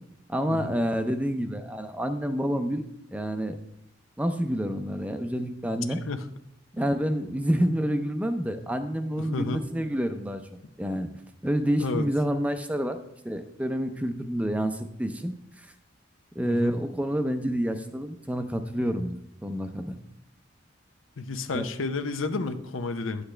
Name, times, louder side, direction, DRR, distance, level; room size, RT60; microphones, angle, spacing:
voice 1, 0.3-2.9 3.1-3.6 4.2-6.0 6.7-10.4 10.8-11.1 11.4-13.0 13.2-15.3 16.4-20.0 21.5-21.6, equal, 5° right, 7 dB, 0.5 m, -28 dB
voice 2, 9.2-9.6 11.8-12.0 16.5-16.7 21.2-23.2, left 3 dB, 85° left, 9 dB, 0.7 m, -31 dB
9.8 x 8.1 x 3.3 m, 0.75 s
head